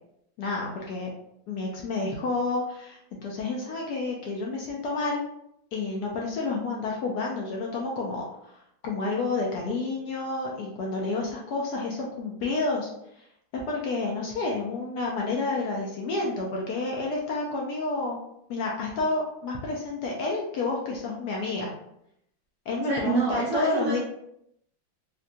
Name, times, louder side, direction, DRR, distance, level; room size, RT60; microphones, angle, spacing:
voice 1, 0.4-1.1 1.5-5.2 5.7-8.2 8.8-12.9 13.2-13.3 13.6-18.2 18.5-21.7 22.7-24.0, left 3 dB, 70° left, -2 dB, 1.0 m, -29 dB
voice 2, 22.9-24.0, right 4 dB, 85° right, -2 dB, 0.7 m, -27 dB
3.8 x 2.2 x 2.6 m, 0.76 s
omnidirectional pair, 2.1 m